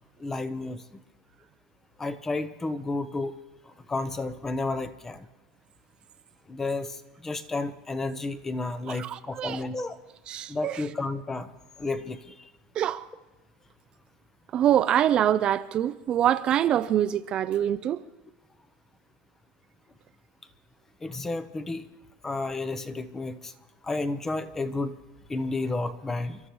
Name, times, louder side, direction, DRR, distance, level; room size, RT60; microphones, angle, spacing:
voice 1, 0.2-0.8 2.0-3.3 3.9-5.3 6.5-10.0 10.5-11.5 11.8-12.5 21.0-21.9 22.2-23.5 23.8-24.9 25.3-26.4, left 3 dB, 15° left, 0.8 m, -31 dB
voice 2, 9.0-9.6 10.3-10.8 12.8-13.0 14.5-18.0, right 11 dB, 35° right, 0.4 m, -25 dB
30.0 x 12.5 x 3.1 m
supercardioid pair, 140°, 3 cm